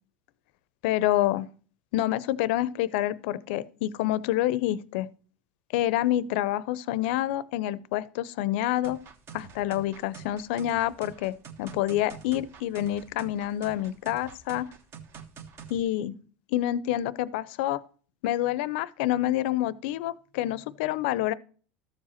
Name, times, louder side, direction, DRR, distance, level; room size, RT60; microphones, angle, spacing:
voice 1, 0.8-1.5 1.9-5.1 5.7-9.0 9.3-14.7 15.7-16.1 16.5-17.8 18.2-21.3, left 14 dB, 70° left, 0.5 m, -27 dB
sound 1, 8.8-15.8, right 7 dB, 45° right, 1.3 m, -46 dB
13.5 x 4.8 x 4.3 m
supercardioid pair, 115°, 6 cm